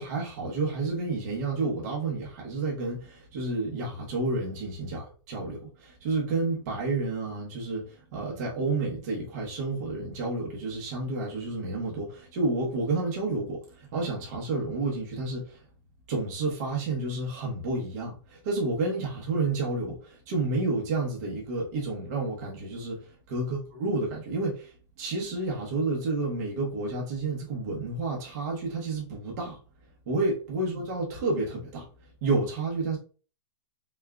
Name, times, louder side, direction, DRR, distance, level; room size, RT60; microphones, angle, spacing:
voice 1, 0.0-15.6 16.1-24.7 25.0-29.6 30.1-31.9 32.2-33.0, right 3 dB, 35° right, 1.0 m, -30 dB
4.3 x 3.6 x 2.3 m
hypercardioid pair, 180°, 15 cm